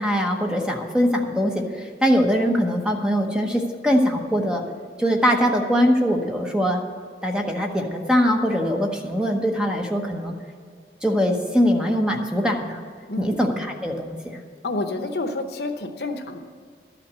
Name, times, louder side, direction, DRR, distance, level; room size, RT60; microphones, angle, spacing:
voice 1, 0.0-4.6 5.0-6.8 7.2-10.3 11.0-12.8 13.2-14.4, equal, 5° right, 1 dB, 0.9 m, -22 dB
voice 2, 14.6-16.4, left 2 dB, 70° left, 7 dB, 0.9 m, -29 dB
12.5 x 5.9 x 8.0 m, 2.1 s
head